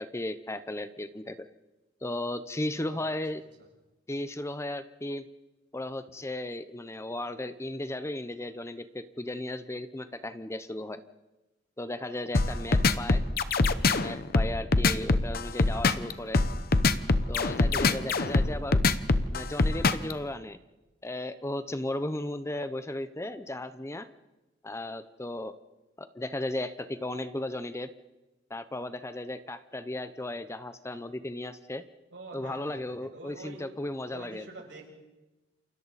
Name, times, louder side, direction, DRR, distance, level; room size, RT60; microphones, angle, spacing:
voice 1, 0.0-1.5 2.0-3.4 4.1-5.2 5.7-11.0 11.8-13.2 13.9-16.4 17.3-18.8 19.3-20.6 21.0-24.1 24.6-25.5 26.0-27.9 28.5-31.8 32.3-34.5, left 1 dB, 15° left, 12 dB, 0.7 m, -35 dB
voice 2, 2.8-3.1 12.5-13.0 13.2-13.3 32.1-33.7 34.1-34.9, right 2 dB, 75° right, -1 dB, 7.0 m, -47 dB
sound 1, 12.3-20.1, left 3 dB, 55° left, 0.9 m, -23 dB
29.0 x 28.0 x 4.1 m, 1.1 s
head